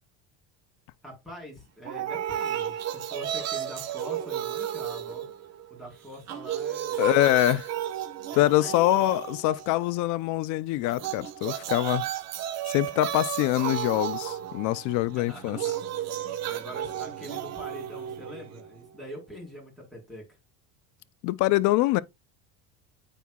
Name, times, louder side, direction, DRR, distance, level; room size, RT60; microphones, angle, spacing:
voice 1, 1.0-5.2 5.7-7.6 8.3-9.2 15.1-15.8 16.4-20.2, equal, ahead, 4.2 m, -44 dB
sound 1, 1.9-5.8 6.1-9.9 10.9-18.9, right 11 dB, 45° right, 1.1 m, -33 dB
voice 2, 7.0-7.7 8.3-12.1 12.7-15.6 21.2-22.0, left 16 dB, 55° left, 0.5 m, -24 dB
9.0 x 4.7 x 2.3 m
cardioid pair, 130°, 35 cm